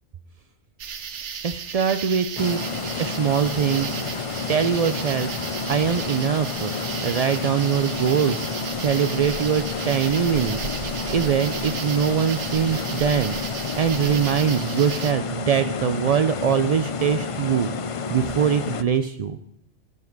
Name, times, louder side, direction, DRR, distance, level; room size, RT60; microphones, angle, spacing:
sound 1, 0.8-15.1, right 7 dB, 75° right, 1.1 m, -34 dB
voice 1, 1.4-2.6 3.0-3.9 4.5-5.3 5.7-6.7 7.0-10.6 10.9-13.4 13.7-17.7 18.1-19.4, right 7 dB, 55° right, 9 dB, 0.4 m, -22 dB
sound 2, 2.4-18.8, left 5 dB, 50° left, 0.4 m, -30 dB
13.5 x 7.3 x 6.0 m, 0.81 s
omnidirectional pair, 1.2 m